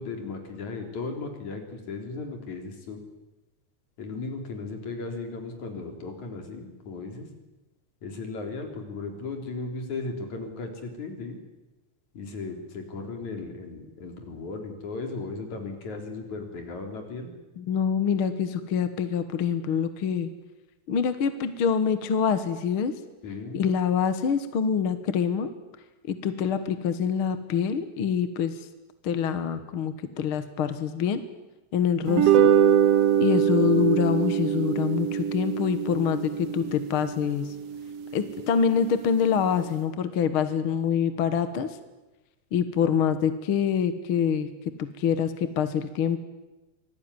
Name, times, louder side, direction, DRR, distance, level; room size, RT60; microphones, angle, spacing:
voice 1, 0.0-3.0 4.0-7.3 8.0-11.4 12.1-17.3 23.2-23.6, left 3 dB, 75° left, 4 dB, 4.9 m, -36 dB
voice 2, 17.6-20.3 20.9-23.0 23.5-25.5 26.0-28.7 29.0-31.2 31.7-32.5 33.2-37.6 38.1-41.8 42.5-46.2, left 7 dB, 55° left, 11 dB, 1.9 m, -25 dB
sound 1, 32.1-38.6, right 9 dB, 65° right, 1.8 m, -24 dB
26.0 x 19.5 x 9.7 m, 1.1 s
omnidirectional pair, 3.4 m